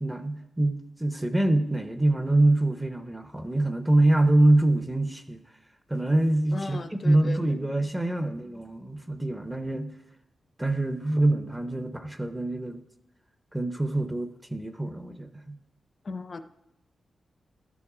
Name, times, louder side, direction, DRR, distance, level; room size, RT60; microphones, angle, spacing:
voice 1, 0.0-5.4 5.9-10.0 10.6-12.8 13.5-15.6, right 1 dB, 5° right, 8 dB, 0.6 m, -25 dB
voice 2, 6.5-7.5 16.0-16.4, left 3 dB, 35° left, 11 dB, 0.5 m, -36 dB
12.0 x 7.1 x 4.9 m, 0.87 s
wide cardioid pair, 160°, 0 cm